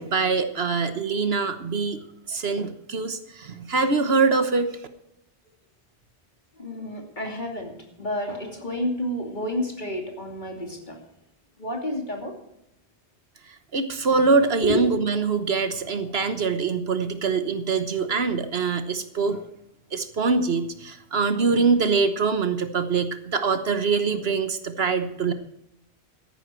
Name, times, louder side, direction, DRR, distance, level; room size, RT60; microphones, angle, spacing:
voice 1, 0.0-2.0 2.3-4.7 13.7-19.4 19.9-25.3, right 4 dB, 65° right, 10 dB, 1.3 m, -24 dB
voice 2, 6.6-7.7 8.0-11.0 11.6-12.3 14.6-14.8, left 1 dB, 45° left, 2 dB, 2.9 m, -30 dB
13.5 x 11.5 x 4.5 m, 0.79 s
omnidirectional pair, 1.1 m